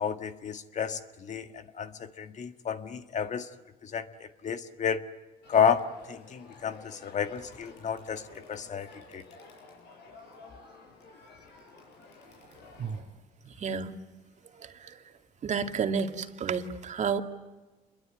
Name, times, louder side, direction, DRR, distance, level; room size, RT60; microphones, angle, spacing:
voice 1, 0.0-3.5 3.8-5.0 5.5-9.2, left 7 dB, 45° left, 9 dB, 1.7 m, -31 dB
Crowd, 5.4-13.0, left 3 dB, 85° left, 6.8 m, -52 dB
voice 2, 12.7-13.1 13.5-14.0 14.6-15.0 15.4-17.2, right 6 dB, 45° right, 6 dB, 2.3 m, -31 dB
28.0 x 22.5 x 9.3 m, 1.2 s
cardioid pair, 110°, 17 cm